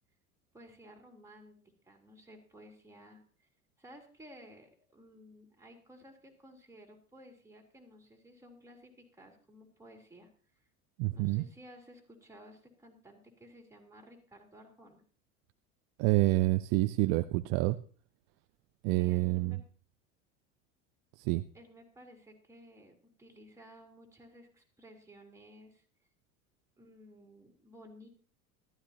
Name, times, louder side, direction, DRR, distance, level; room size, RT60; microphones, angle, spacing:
voice 1, 0.5-1.6 1.8-3.2 3.8-10.3 11.1-15.0 18.9-19.6 21.5-25.9 26.8-28.1, equal, 5° right, 0 dB, 3.6 m, -55 dB
voice 2, 11.0-11.4 16.0-17.8 18.8-19.6 21.2-21.4, right 20 dB, 55° right, 11 dB, 0.7 m, -28 dB
14.5 x 13.0 x 2.9 m, 0.40 s
hypercardioid pair, 85°, 41 cm